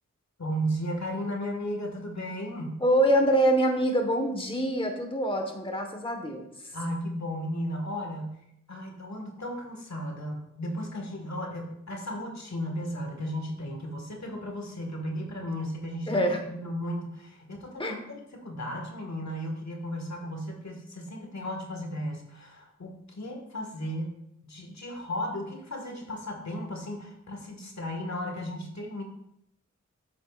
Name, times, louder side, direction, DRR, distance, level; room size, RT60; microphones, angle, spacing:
voice 1, 0.4-2.8 6.7-8.4 8.7-16.2 16.5-24.1 24.4-29.0, equal, 65° left, 2 dB, 1.8 m, -35 dB
voice 2, 2.8-6.7 16.1-16.4 17.8-18.0, right 1 dB, 20° left, 4 dB, 1.3 m, -25 dB
8.6 x 7.8 x 2.5 m, 0.77 s
cardioid pair, 40°, 29 cm